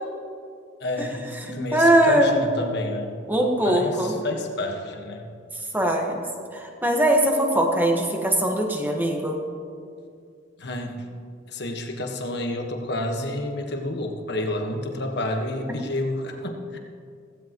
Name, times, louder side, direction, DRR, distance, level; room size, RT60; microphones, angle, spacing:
voice 1, 0.8-3.1 3.6-5.2 10.6-11.0 11.5-16.8, left 1 dB, 60° left, 3 dB, 1.5 m, -29 dB
voice 2, 1.5-2.4 3.3-4.1 5.7-6.2 6.5-9.4, right 1 dB, 10° right, 1 dB, 1.5 m, -21 dB
16.0 x 16.0 x 3.1 m, 2.3 s
head